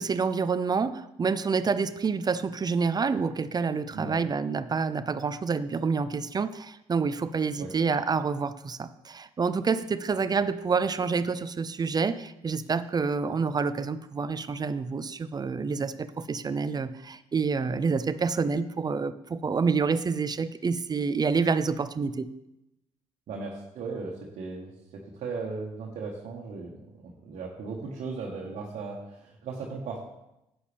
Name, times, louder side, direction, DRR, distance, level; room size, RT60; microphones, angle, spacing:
voice 1, 0.0-22.3, right 5 dB, 35° right, 13 dB, 0.5 m, -28 dB
voice 2, 23.3-24.7 25.1-30.1, right 4 dB, 65° right, -3 dB, 1.5 m, -37 dB
11.0 x 8.7 x 3.4 m, 0.87 s
supercardioid pair, 60°, 12 cm